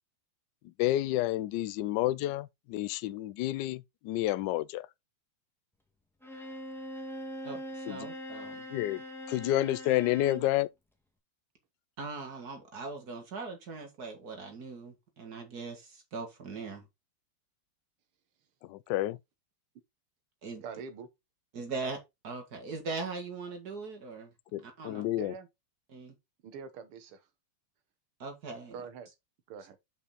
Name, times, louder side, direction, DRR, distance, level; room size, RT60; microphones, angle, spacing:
voice 1, 0.8-4.9 7.9-8.1 8.7-9.0 9.3-10.7 18.7-19.2 24.5-25.3, left 15 dB, 75° left, 1.0 m, -30 dB
Bowed string instrument, 6.2-10.5, equal, ahead, 1.4 m, -42 dB
voice 2, 7.4-8.7 12.0-16.9 20.4-20.6 21.5-24.3 24.6-25.0 25.9-26.1 28.2-28.8, right 4 dB, 45° right, 2.3 m, -40 dB
voice 3, 20.6-21.1 25.2-25.5 26.4-27.3 28.7-29.1 29.5-29.8, right 6 dB, 85° right, 2.0 m, -44 dB
6.9 x 5.4 x 4.0 m
omnidirectional pair, 2.4 m